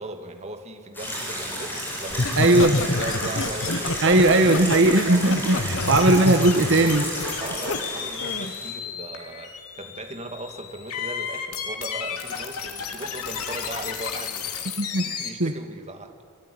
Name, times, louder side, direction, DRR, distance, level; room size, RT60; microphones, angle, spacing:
voice 1, 0.0-4.5 5.5-6.2 7.4-16.2, right 2 dB, 30° right, 5 dB, 2.1 m, -38 dB
sound 1, 0.9-8.7, equal, 10° left, 7.9 m, -32 dB
Laughter, 2.1-7.8 8.2-8.5, left 2 dB, 60° left, 1.4 m, -27 dB
voice 2, 2.4-2.7 4.0-7.1 14.8-15.5, right 2 dB, 55° right, 6 dB, 1.4 m, -19 dB
sound 2, 5.8-15.3, left 7 dB, 85° left, 2.8 m, -33 dB
26.5 x 19.0 x 10.0 m, 2.1 s
head